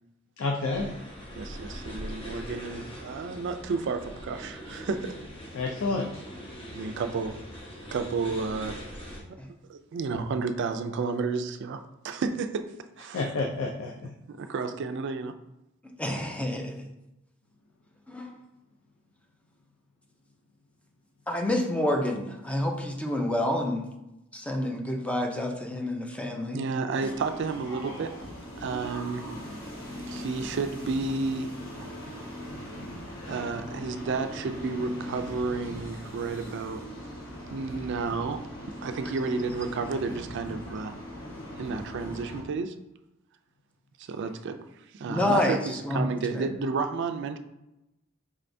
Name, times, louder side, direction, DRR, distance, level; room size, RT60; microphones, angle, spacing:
voice 1, 0.4-1.0 5.5-6.1 13.1-13.9 33.1-33.4, left 3 dB, 85° left, 1 dB, 0.4 m, -29 dB
sound 1, 0.7-9.2, equal, 25° left, 0.8 m, -42 dB
voice 2, 1.4-5.2 6.8-7.4 7.9-8.8 9.3-9.4 9.7-13.5 14.3-15.3 26.5-28.2 28.6-29.3 30.1-31.5 33.3-36.8 37.5-38.5 38.8-40.9 41.6-42.7 44.0-44.6 44.9-47.4, right 4 dB, 60° right, 8 dB, 0.3 m, -31 dB
voice 3, 16.0-16.9 18.1-18.3 21.3-23.9 24.3-26.6 45.0-45.6 45.8-46.5, left 1 dB, 5° left, 2 dB, 0.5 m, -28 dB
sound 2, 27.0-42.4, left 1 dB, 50° left, 1.4 m, -39 dB
4.8 x 3.3 x 2.6 m, 0.92 s
head